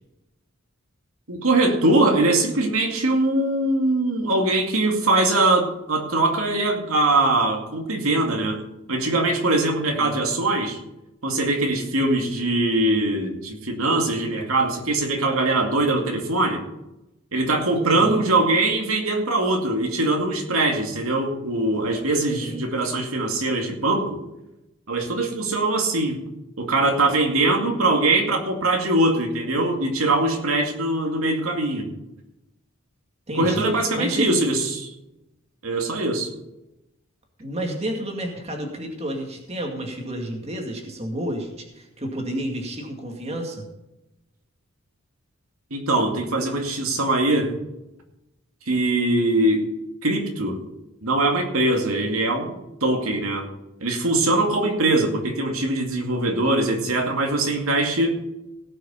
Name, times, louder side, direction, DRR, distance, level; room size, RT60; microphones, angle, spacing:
voice 1, 1.3-8.6 8.9-10.8 11.2-16.6 17.3-24.2 24.9-26.2 26.6-31.9 33.3-34.9 35.6-36.3 45.7-47.6 48.7-49.7 50.0-50.6 51.0-52.5 52.8-53.5 53.8-58.2, right 2 dB, 75° right, 2 dB, 2.4 m, -22 dB
voice 2, 9.8-10.2 17.8-18.2 22.2-22.6 33.3-33.7 33.9-34.3 37.4-43.6, right 1 dB, 30° right, 2 dB, 2.2 m, -30 dB
17.5 x 6.6 x 5.6 m, 0.91 s
head